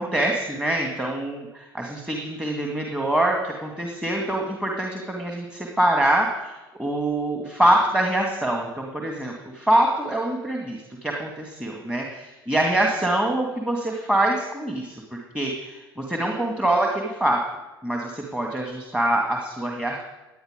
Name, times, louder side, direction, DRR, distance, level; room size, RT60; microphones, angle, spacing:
voice 1, 0.0-6.5 6.8-17.4 17.8-20.0, right 1 dB, 5° right, 0 dB, 2.3 m, -24 dB
18.5 x 10.5 x 5.3 m, 1.0 s
figure-of-eight pair, 70°, 13 cm